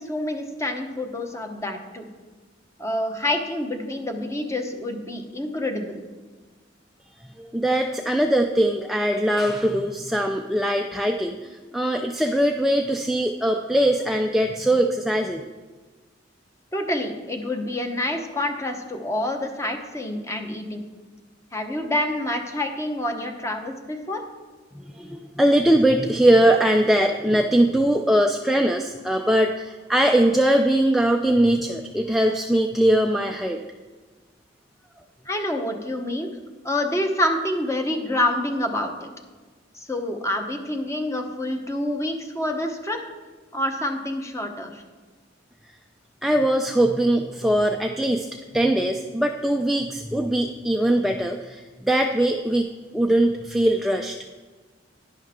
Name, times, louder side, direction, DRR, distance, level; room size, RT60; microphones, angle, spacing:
voice 1, 0.0-2.0 2.8-6.0 16.7-20.8 21.5-24.2 35.3-36.3 36.6-39.1 39.7-43.0 43.5-44.8, left 1 dB, 15° left, 4 dB, 1.0 m, -27 dB
voice 2, 7.4-15.4 24.7-33.6 46.2-48.3 48.5-54.2, right 1 dB, ahead, 3 dB, 0.4 m, -21 dB
11.0 x 10.5 x 3.7 m, 1.3 s
head